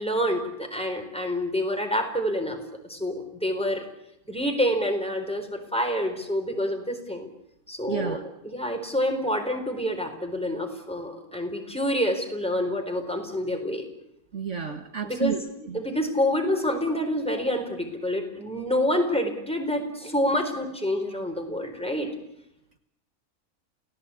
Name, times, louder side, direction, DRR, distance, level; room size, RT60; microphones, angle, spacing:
voice 1, 0.0-2.6 2.9-3.9 4.3-7.3 7.7-8.2 8.4-13.9 15.0-15.3 15.7-22.1, equal, 5° left, 4 dB, 4.2 m, -27 dB
voice 2, 7.9-8.2 14.3-15.8, right 6 dB, 55° right, 6 dB, 1.8 m, -31 dB
29.0 x 18.0 x 8.5 m, 0.83 s
omnidirectional pair, 1.5 m